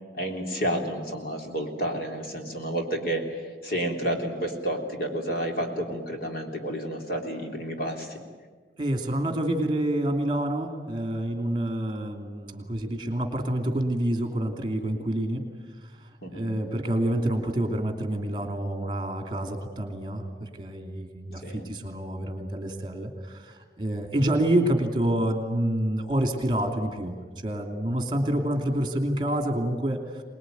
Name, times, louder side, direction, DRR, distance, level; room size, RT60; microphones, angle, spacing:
voice 1, 0.1-8.2 16.2-16.5 21.4-21.7, right 1 dB, 55° left, 2 dB, 3.5 m, -30 dB
voice 2, 8.8-15.4 16.0-27.2 27.4-30.2, right 1 dB, 25° right, 5 dB, 2.8 m, -28 dB
24.5 x 20.5 x 9.4 m, 1.5 s
head